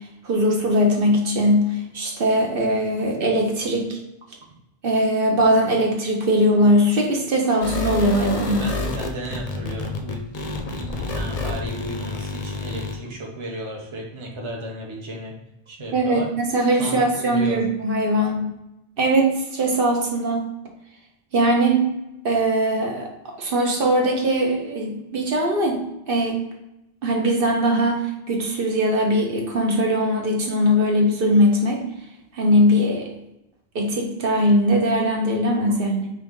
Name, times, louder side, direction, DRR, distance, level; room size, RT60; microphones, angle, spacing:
voice 1, 0.2-4.0 4.8-8.7 15.9-18.5 19.0-20.5 21.3-21.9 22.2-26.4 27.0-31.8 32.3-33.1 33.7-36.1, equal, 65° right, 1 dB, 0.9 m, -20 dB
sound 1, 7.6-13.0, left 3 dB, 45° left, 0.6 m, -29 dB
voice 2, 8.4-10.2 10.7-15.3 15.7-16.3 16.8-17.6 35.7-35.8, right 1 dB, 30° right, -1 dB, 0.7 m, -33 dB
4.6 x 2.6 x 3.6 m, 0.88 s
omnidirectional pair, 1.0 m